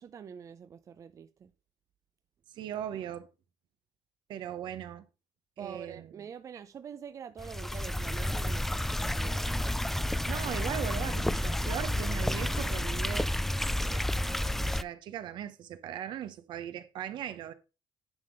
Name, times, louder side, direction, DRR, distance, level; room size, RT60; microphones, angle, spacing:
voice 1, 0.0-1.5 5.6-9.6, right 7 dB, 40° right, 0.6 m, -45 dB
voice 2, 2.5-3.3 4.3-5.1 5.6-6.1 10.3-13.3 13.8-17.5, right 10 dB, 75° right, 1.1 m, -39 dB
sound 1, 7.4-14.8, left 1 dB, 5° left, 0.4 m, -31 dB
10.5 x 3.7 x 6.4 m
cardioid pair, 120°, 8 cm